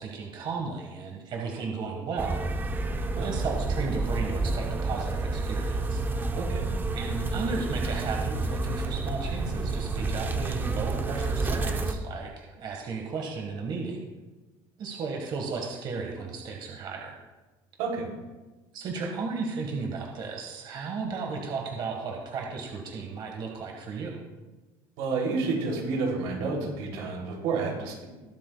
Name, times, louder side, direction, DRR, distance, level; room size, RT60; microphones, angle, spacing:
voice 1, 0.0-2.4 3.2-6.0 6.9-14.0 14.8-17.2 18.7-24.2, right 4 dB, 45° right, 0 dB, 1.6 m, -34 dB
sound 1, 2.2-11.9, right 3 dB, 20° right, 0.8 m, -29 dB
voice 2, 6.4-6.7 17.8-18.1 25.0-28.1, right 4 dB, 90° right, -1 dB, 3.1 m, -30 dB
21.0 x 7.3 x 2.3 m, 1.2 s
cardioid pair, 145°, 10 cm